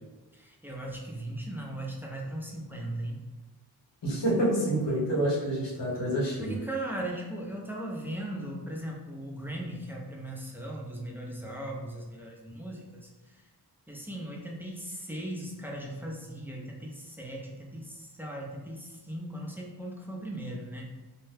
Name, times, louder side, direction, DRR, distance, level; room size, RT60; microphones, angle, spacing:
voice 1, 0.3-3.2 6.4-13.4 13.9-20.9, right 1 dB, 5° right, -2 dB, 0.4 m, -38 dB
voice 2, 4.0-6.6, right 1 dB, 90° left, -6 dB, 1.1 m, -27 dB
2.7 x 2.1 x 3.3 m, 1.2 s
wide cardioid pair, 100°, 42 cm